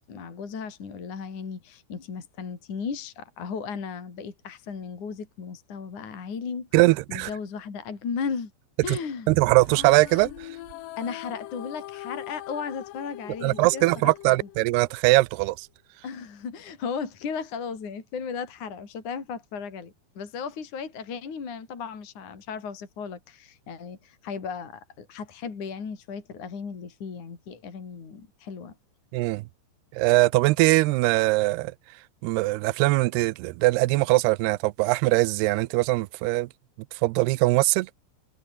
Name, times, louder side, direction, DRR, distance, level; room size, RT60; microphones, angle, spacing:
voice 1, 0.1-6.7 7.1-8.5 8.8-9.4 11.0-14.5 16.0-28.8, left 6 dB, 45° left, 5.2 m, -35 dB
voice 2, 6.7-7.3 8.9-9.0 9.3-10.5 13.4-15.7 29.1-29.4 29.9-31.7 32.2-36.5 36.9-37.9, right 21 dB, 85° right, 2.5 m, -21 dB
sound 1, 9.6-15.1, left 15 dB, 75° left, 2.0 m, -41 dB
omnidirectional pair, 5.2 m